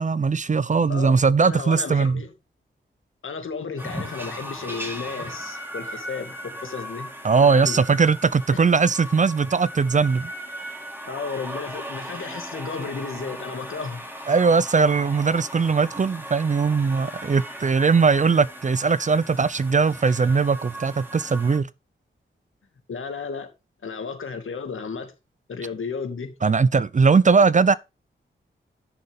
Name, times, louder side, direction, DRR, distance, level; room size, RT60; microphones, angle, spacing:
voice 1, 0.0-2.2 7.2-10.3 14.3-21.7 26.4-27.7, right 5 dB, 35° right, 0.5 m, -20 dB
voice 2, 1.4-2.3 3.2-7.1 7.3-7.8 8.5-8.6 11.1-14.0 22.9-23.5 23.8-25.1 25.5-26.3, left 5 dB, 75° left, 2.2 m, -33 dB
sound 1, 3.8-21.6, right 1 dB, 10° right, 2.6 m, -38 dB
11.0 x 6.7 x 3.6 m
cardioid pair, 70°, 21 cm